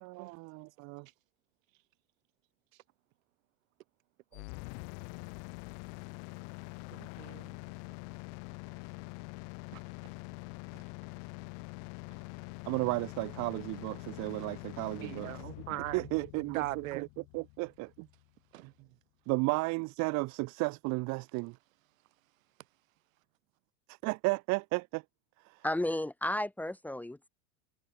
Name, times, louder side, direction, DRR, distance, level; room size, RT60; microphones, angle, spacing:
voice 1, 0.0-1.1 12.7-15.3 15.9-18.1 18.6-18.7 19.3-21.6 23.9-25.0 25.4-25.6, right 26 dB, 45° right, 1.3 m, -34 dB
sound 1, 4.3-18.3, left 39 dB, 50° left, 2.2 m, -45 dB
voice 2, 6.9-7.6 9.7-9.8 10.7-10.8 15.0-16.0 16.5-17.0 18.5-18.7, right 17 dB, 80° right, 6.9 m, -40 dB
voice 3, 25.6-27.3, left 1 dB, 5° left, 1.8 m, -33 dB
supercardioid pair, 150°, 40 cm